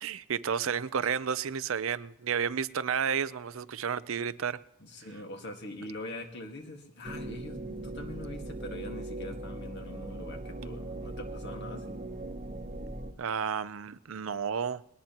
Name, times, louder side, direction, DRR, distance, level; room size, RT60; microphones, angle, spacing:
voice 1, 0.0-4.6 13.2-14.8, right 7 dB, 65° right, 0.5 m, -31 dB
voice 2, 4.8-11.9, left 1 dB, 50° left, 1.8 m, -43 dB
sound 1, 7.0-13.1, right 1 dB, 30° right, 1.1 m, -39 dB
20.5 x 18.5 x 3.0 m
head